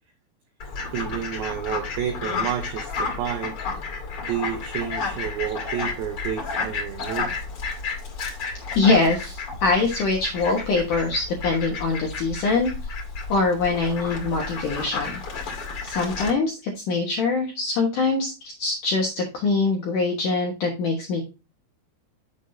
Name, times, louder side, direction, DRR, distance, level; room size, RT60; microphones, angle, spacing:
Fowl, 0.6-16.3, left 4 dB, 40° left, 2.1 m, -32 dB
voice 1, 0.9-3.6 4.2-7.3, right 9 dB, 85° right, 5 dB, 2.1 m, -30 dB
voice 2, 8.8-12.7 13.3-15.1 15.8-21.2, left 3 dB, 75° left, 1 dB, 1.9 m, -23 dB
7.9 x 7.2 x 2.7 m, 0.28 s
omnidirectional pair, 5.5 m